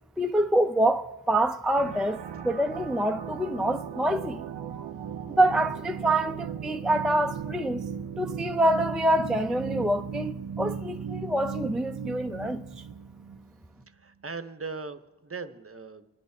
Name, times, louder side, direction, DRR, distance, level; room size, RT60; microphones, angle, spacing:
voice 1, 0.2-4.4 4.7-4.8 5.4-7.8 8.2-12.8, right 1 dB, ahead, 0.4 m, -26 dB
sound 1, 1.7-13.5, right 7 dB, 85° right, 0.5 m, -37 dB
voice 2, 13.9-16.1, right 4 dB, 35° right, 0.7 m, -39 dB
28.5 x 11.5 x 2.7 m
wide cardioid pair, 45°, 40 cm